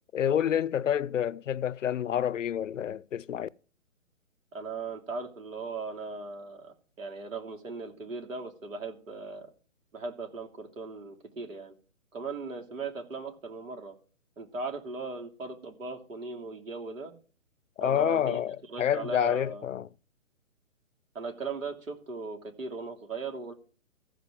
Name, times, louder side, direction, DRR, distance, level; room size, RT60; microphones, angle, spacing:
voice 1, 0.1-3.5 17.8-19.9, left 9 dB, 65° left, 0.6 m, -28 dB
voice 2, 4.5-9.5 9.9-11.7 12.1-13.9 14.4-17.1 17.8-18.4 18.7-19.6 21.1-23.5, right 4 dB, 70° right, 3.1 m, -38 dB
15.0 x 5.1 x 7.5 m
hypercardioid pair, 170°, 40 cm